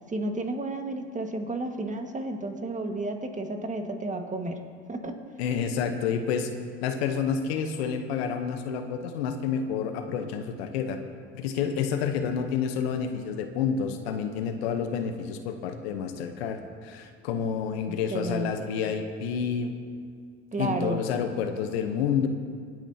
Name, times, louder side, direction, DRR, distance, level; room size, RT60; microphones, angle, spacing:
voice 1, 0.1-4.6 4.9-5.2 17.9-18.7 20.5-21.0, right 2 dB, 25° right, 4 dB, 1.7 m, -32 dB
voice 2, 5.4-6.5 6.8-11.0 11.3-19.7 20.6-22.3, left 7 dB, 80° left, 7 dB, 1.0 m, -29 dB
24.5 x 9.0 x 2.9 m, 2.2 s
hypercardioid pair, 70°, 31 cm